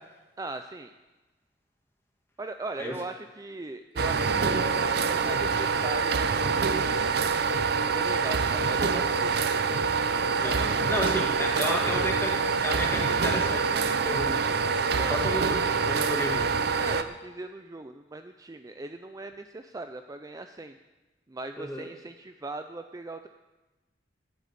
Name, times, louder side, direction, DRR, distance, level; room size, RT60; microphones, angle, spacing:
voice 1, 0.4-0.9 2.4-4.7 5.0-6.9 7.8-9.4 10.3-10.7 11.6-12.2 15.0-15.6 16.7-20.8 21.3-23.3, right 2 dB, 20° right, 8 dB, 0.4 m, -39 dB
sound 1, 4.0-17.0, right 5 dB, 60° right, 0.6 m, -26 dB
voice 2, 10.4-12.4 12.6-14.6 15.1-16.5 21.6-21.9, left 1 dB, 15° left, 0 dB, 2.2 m, -33 dB
11.5 x 8.3 x 8.4 m, 1.1 s
head